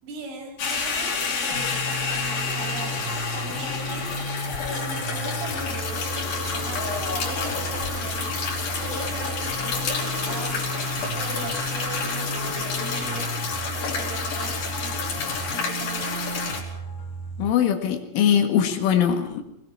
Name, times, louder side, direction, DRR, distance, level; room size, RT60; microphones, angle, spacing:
voice 1, 0.0-3.0 3.3-13.3 13.7-15.1 15.5-16.2, right 3 dB, 70° right, 1 dB, 6.9 m, -39 dB
sound 1, 0.6-16.6, left 5 dB, 50° left, 4.9 m, -29 dB
sound 2, 1.5-17.5, right 2 dB, 30° left, 2.6 m, -34 dB
Train, 6.4-13.4, right 3 dB, 35° right, 3.4 m, -41 dB
voice 2, 17.4-19.4, left 8 dB, 80° left, 5 dB, 4.3 m, -21 dB
21.0 x 20.0 x 6.2 m, 0.76 s
omnidirectional pair, 5.7 m